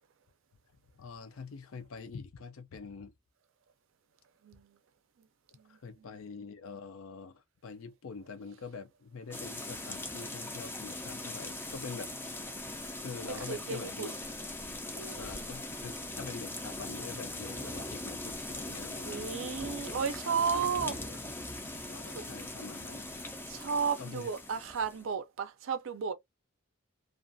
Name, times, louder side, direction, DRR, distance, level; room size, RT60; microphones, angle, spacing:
voice 1, 1.0-3.1 5.7-12.2 13.0-14.2 15.1-19.2 20.5-21.2 21.9-23.1 24.0-24.3, left 5 dB, 70° left, 0.4 m, -45 dB
voice 2, 4.4-4.7 5.2-5.3 5.6-5.8 13.5-14.1 14.9-15.2 19.0-21.0 22.1-22.2 23.5-26.1, right 6 dB, 65° right, 0.4 m, -33 dB
sound 1, 9.3-25.1, left 2 dB, 10° left, 0.4 m, -40 dB
2.4 x 2.3 x 2.5 m
head